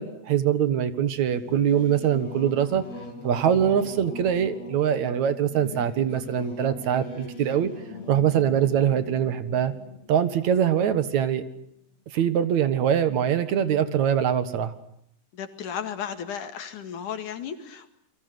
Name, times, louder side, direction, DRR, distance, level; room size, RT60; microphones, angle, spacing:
voice 1, 0.0-2.8 3.2-7.7 8.1-9.7 10.1-11.4 12.1-14.7, right 9 dB, 70° right, 12 dB, 2.9 m, -23 dB
Singing / Musical instrument, 1.1-11.2, left 3 dB, 60° left, 5.2 m, -41 dB
voice 2, 15.3-17.9, left 8 dB, 85° left, 9 dB, 3.6 m, -34 dB
29.5 x 22.5 x 7.9 m, 0.70 s
omnidirectional pair, 3.5 m